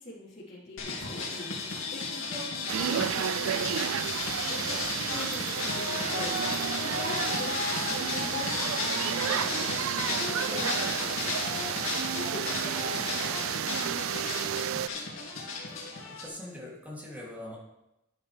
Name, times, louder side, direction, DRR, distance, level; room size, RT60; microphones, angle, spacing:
voice 1, 0.0-1.6 1.9-4.0 4.5-6.4 6.8-11.7 12.1-14.5, left 1 dB, 35° left, -9 dB, 4.2 m, -42 dB
sound 1, 0.8-16.3, left 3 dB, 80° left, 2.3 m, -34 dB
sound 2, 2.7-14.9, right 9 dB, 85° right, 0.4 m, -32 dB
voice 2, 16.0-17.6, left 1 dB, 10° right, -4 dB, 3.0 m, -42 dB
11.0 x 10.0 x 3.5 m, 0.90 s
head